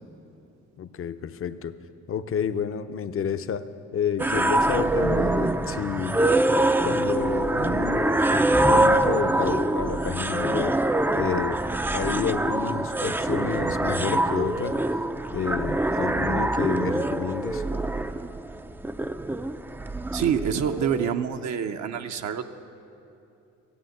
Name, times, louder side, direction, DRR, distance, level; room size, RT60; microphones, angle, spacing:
voice 1, 0.8-1.8 2.1-6.2 6.8-10.8 11.2-11.6 11.9-14.8 15.3-17.6, left 8 dB, 45° left, 11 dB, 0.6 m, -30 dB
sound 1, 4.2-21.1, right 2 dB, 5° right, 0.4 m, -24 dB
voice 2, 20.1-22.4, right 8 dB, 65° right, 6 dB, 0.7 m, -26 dB
14.5 x 9.0 x 7.7 m, 2.7 s
cardioid pair, 90°, 30 cm